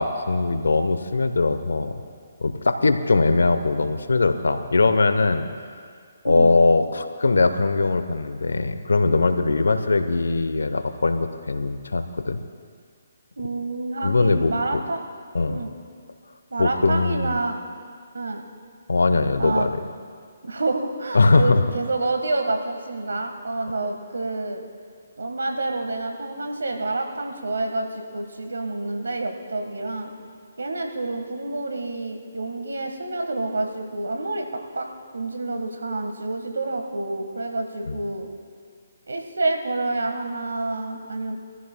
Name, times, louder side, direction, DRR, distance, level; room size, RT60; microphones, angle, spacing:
voice 1, 0.0-1.9 2.4-5.5 6.2-12.4 14.0-14.8 15.3-15.6 16.6-17.4 18.9-19.7 21.1-21.6 37.9-38.0, left 3 dB, 85° left, 9 dB, 0.8 m, -21 dB
voice 2, 13.4-15.0 15.5-15.7 16.5-17.6 18.1-18.4 19.4-19.7 20.4-24.6 25.2-30.1 30.6-34.9 35.1-38.3 39.1-41.4, right 2 dB, 85° right, 4 dB, 1.4 m, -28 dB
23.0 x 14.5 x 2.2 m, 2.1 s
hypercardioid pair, 150°, 0 cm